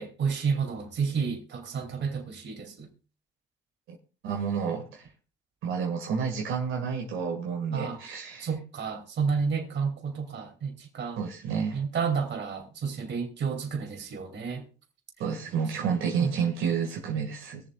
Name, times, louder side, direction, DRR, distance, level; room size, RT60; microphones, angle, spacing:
voice 1, 0.0-2.9 7.7-8.0 8.4-11.2 11.7-14.6 16.2-16.3, right 5 dB, 65° right, 2.9 m, -31 dB
voice 2, 4.2-5.1 5.6-8.5 11.2-11.8 15.2-17.6, right 6 dB, 90° right, 2.0 m, -30 dB
22.0 x 7.4 x 2.4 m
cardioid pair, 90°, 20 cm